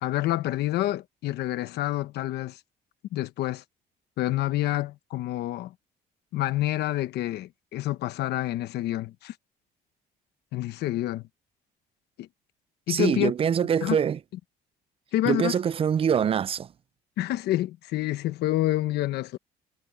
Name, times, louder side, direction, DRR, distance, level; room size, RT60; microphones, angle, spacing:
voice 1, 0.0-2.6 3.1-3.6 4.2-5.7 6.3-9.3 10.5-11.2 12.2-12.3 12.9-13.3 13.8-14.0 15.1-15.6 17.2-19.4, left 15 dB, 75° left, 1.1 m, -28 dB
voice 2, 12.9-14.2 15.3-16.7, right 8 dB, 35° right, 0.5 m, -24 dB
cardioid pair, 110°, 17 cm